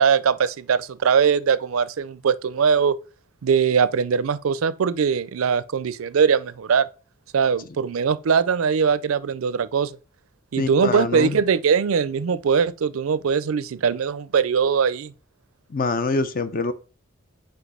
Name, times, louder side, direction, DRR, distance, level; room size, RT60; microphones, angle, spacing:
voice 1, 0.0-3.0 3.4-6.9 7.3-9.9 10.5-15.1, right 6 dB, 80° right, 0.4 m, -21 dB
voice 2, 10.6-11.4 15.7-16.7, left 3 dB, 45° left, 0.6 m, -25 dB
5.1 x 4.7 x 4.9 m
head